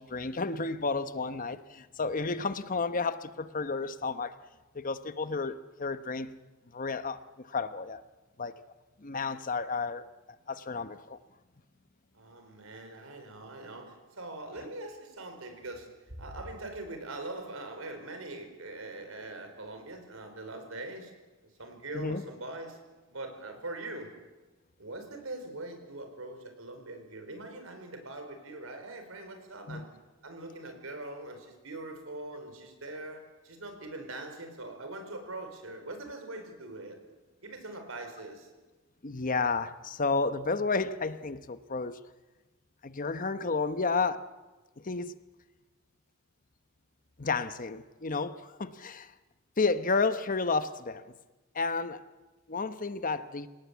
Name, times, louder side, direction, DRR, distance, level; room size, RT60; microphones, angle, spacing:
voice 1, 0.0-4.3 4.7-6.4 6.7-8.0 8.4-8.6 9.0-10.0 10.5-11.2 21.9-22.2 29.7-29.8 39.0-42.0 42.8-44.2 44.8-45.2 47.2-49.1 49.6-51.2 51.5-52.1 52.5-53.5, left 4 dB, 40° left, 1.0 m, -31 dB
voice 2, 12.1-21.1 21.6-22.8 23.1-24.1 24.8-29.9 30.2-37.0 37.4-38.5, right 2 dB, 85° right, 4.7 m, -42 dB
26.5 x 18.5 x 8.4 m
head